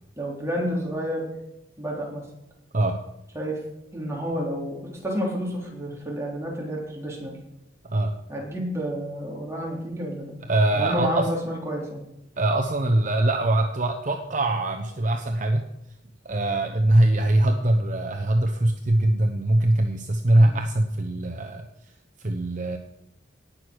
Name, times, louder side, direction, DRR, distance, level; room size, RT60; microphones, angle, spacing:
voice 1, 0.2-1.4 1.8-2.3 3.3-3.6 3.9-7.4 8.3-10.3 10.7-12.0 20.3-20.6, equal, 15° right, -2 dB, 3.6 m, -30 dB
voice 2, 10.5-11.3 12.4-15.6 16.2-21.9 22.2-22.8, right 1 dB, 45° right, 4 dB, 0.9 m, -22 dB
18.0 x 6.5 x 6.3 m, 0.85 s
head